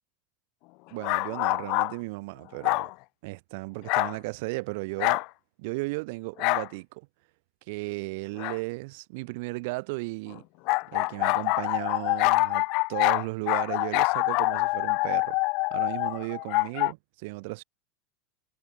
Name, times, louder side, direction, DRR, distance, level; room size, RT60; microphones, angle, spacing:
voice 1, 0.9-2.9 3.2-5.2 5.6-7.1 7.7-10.4 10.9-15.4 15.7-17.6, right 26 dB, 65° right, 5.7 m, -35 dB
sound 1, 1.0-1.9 2.6-2.9 3.9-4.2 5.0-5.3 6.4-6.7 8.4-8.6 10.7-16.9, left 28 dB, 50° left, 0.8 m, -25 dB
supercardioid pair, 140°, 0 cm